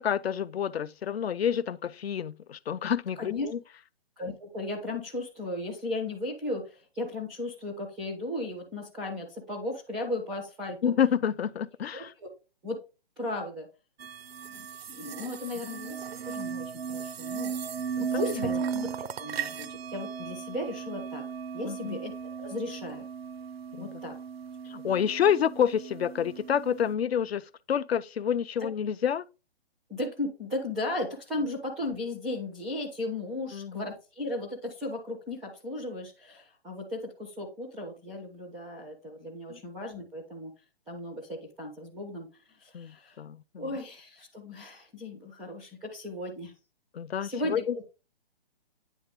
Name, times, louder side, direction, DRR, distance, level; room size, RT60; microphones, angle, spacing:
voice 1, 0.0-3.6 10.8-12.1 18.0-18.2 21.6-22.0 23.8-23.9 24.7-29.2 33.5-33.9 39.5-39.6 42.7-43.7 46.9-47.7, left 8 dB, 80° left, 0.6 m, -28 dB
voice 2, 4.2-10.9 11.9-12.3 12.6-12.8 13.2-13.7 14.5-14.6 14.9-17.5 17.9-21.2 21.5-22.1 22.4-23.1 23.8-24.2 28.6-28.7 29.9-40.5 40.9-42.3 42.6-43.2 43.6-46.5 47.2-47.9, left 2 dB, ahead, 0.3 m, -36 dB
sound 1, 14.0-26.9, right 7 dB, 80° right, 0.6 m, -37 dB
9.3 x 3.5 x 3.6 m
hypercardioid pair, 145°, 31 cm